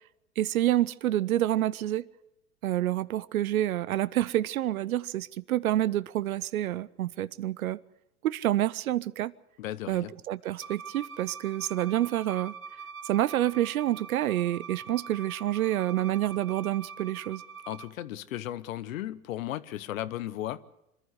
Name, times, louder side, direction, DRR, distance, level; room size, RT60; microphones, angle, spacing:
voice 1, 0.4-2.1 2.6-7.8 8.2-9.3 9.9-12.5 13.0-17.4, right 13 dB, 75° right, 0.7 m, -28 dB
voice 2, 9.6-10.1 17.7-20.6, left 13 dB, 65° left, 1.0 m, -35 dB
Bowed string instrument, 10.6-17.9, right 5 dB, 25° right, 2.8 m, -44 dB
26.0 x 11.5 x 9.7 m
hypercardioid pair, 105°, 43 cm